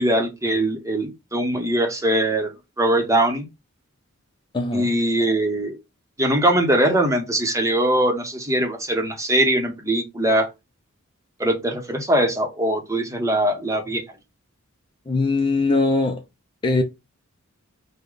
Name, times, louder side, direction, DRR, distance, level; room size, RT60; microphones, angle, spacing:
voice 1, 0.0-2.5 2.8-3.5 4.7-5.7 6.2-10.5 11.4-14.0, right 1 dB, 15° right, 0.9 m, -21 dB
voice 2, 4.5-4.9 15.1-16.2 16.6-16.8, left 3 dB, 20° left, 0.4 m, -21 dB
4.7 x 2.2 x 3.8 m
head